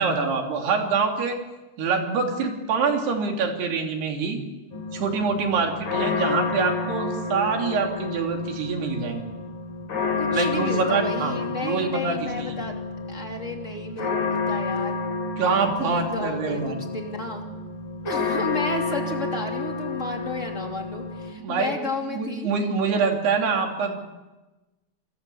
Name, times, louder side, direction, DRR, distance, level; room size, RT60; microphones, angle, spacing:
voice 1, 0.0-1.4 1.8-4.4 4.9-9.3 10.3-11.3 11.6-12.5 15.4-16.8 21.4-21.7 22.1-24.0, right 5 dB, 60° right, 2 dB, 4.9 m, -25 dB
sound 1, 4.7-21.3, left 4 dB, 50° left, 5.6 m, -30 dB
voice 2, 10.2-12.8 13.1-14.9 15.5-17.4 18.0-22.5, left 2 dB, 20° left, 2 dB, 2.3 m, -32 dB
29.5 x 21.0 x 7.0 m, 1.1 s
omnidirectional pair, 5.3 m